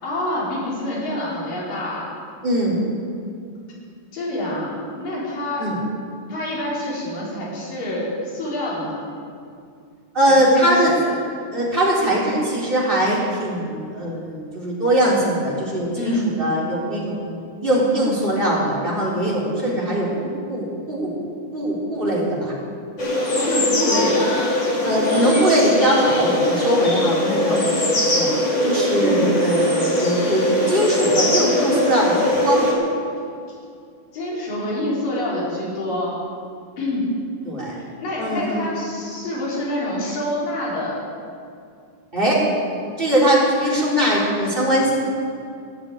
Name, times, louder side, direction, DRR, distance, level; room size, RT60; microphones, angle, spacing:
voice 1, 0.0-2.1 4.1-5.6 6.3-9.0 10.3-11.1 15.9-16.3 23.4-24.4 28.9-29.4 34.1-36.2 36.8-37.1 37.8-41.0, left 1 dB, 50° left, -6 dB, 5.4 m, -26 dB
voice 2, 2.4-2.8 5.6-5.8 10.1-10.9 11.5-17.3 17.6-21.1 21.5-22.5 24.8-27.9 28.1-28.3 28.6-32.6 37.4-37.7 38.2-38.7 42.1-42.4 43.0-44.9, right 1 dB, 15° right, -5 dB, 3.1 m, -21 dB
sound 1, 23.0-32.7, left 1 dB, 30° left, 2.9 m, -21 dB
15.5 x 8.7 x 8.6 m, 2.4 s
omnidirectional pair, 5.2 m